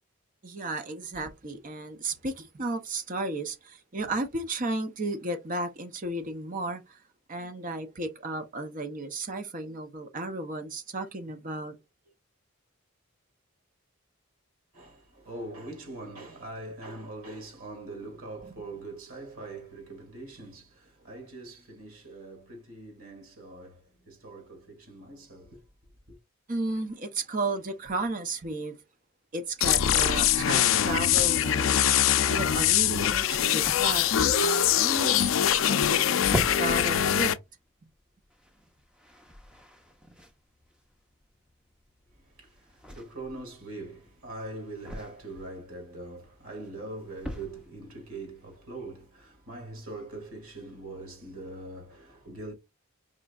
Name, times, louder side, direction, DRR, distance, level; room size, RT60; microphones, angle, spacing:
voice 1, 0.4-7.0 7.3-11.8 18.4-18.6 26.5-28.8 29.3-31.8 32.3-34.1 34.4-37.3, right 2 dB, 40° right, 0.6 m, -34 dB
voice 2, 14.7-25.6 26.1-26.2 42.2-52.5, right 2 dB, 85° right, 2.2 m, -42 dB
sound 1, 29.3-49.1, equal, 5° right, 0.8 m, -43 dB
sound 2, 29.6-37.4, left 10 dB, 65° left, 0.4 m, -23 dB
5.0 x 3.2 x 2.3 m
head